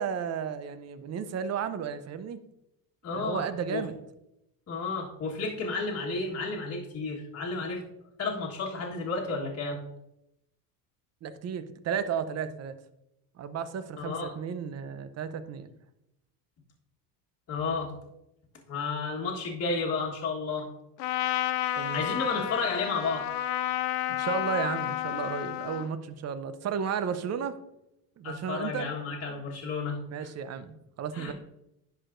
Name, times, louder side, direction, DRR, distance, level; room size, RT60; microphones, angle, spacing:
voice 1, 0.0-2.4 3.1-4.0 11.2-12.7 13.4-15.7 21.8-22.0 24.1-27.6 28.2-28.9 30.1-31.3, right 7 dB, 35° right, 12 dB, 0.6 m, -33 dB
voice 2, 3.0-3.4 3.7-3.8 4.7-7.8 8.2-9.8 14.0-14.3 17.5-17.9 18.7-20.7 21.9-23.2 28.2-30.3 31.1-31.3, left 4 dB, 35° left, -3 dB, 1.5 m, -32 dB
Trumpet, 21.0-25.9, left 13 dB, 80° left, 0.6 m, -31 dB
10.5 x 4.8 x 2.6 m, 0.85 s
supercardioid pair, 100°, 45 cm